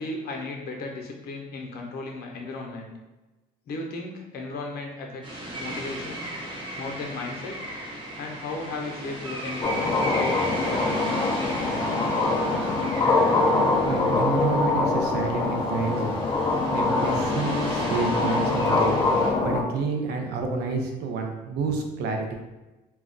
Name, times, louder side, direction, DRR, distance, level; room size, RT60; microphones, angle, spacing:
voice 1, 0.0-2.9 3.7-6.3 6.8-7.6 8.2-10.4 10.6-11.1, left 2 dB, 65° left, 1 dB, 0.6 m, -35 dB
sound 1, 5.2-19.3, right 1 dB, 30° right, 0.8 m, -36 dB
sound 2, 9.6-19.6, left 3 dB, 20° left, 0.4 m, -24 dB
voice 2, 13.8-16.1 16.7-22.3, right 4 dB, 80° right, 3 dB, 0.5 m, -29 dB
2.3 x 2.1 x 3.7 m, 1.1 s
cardioid pair, 110°, 17 cm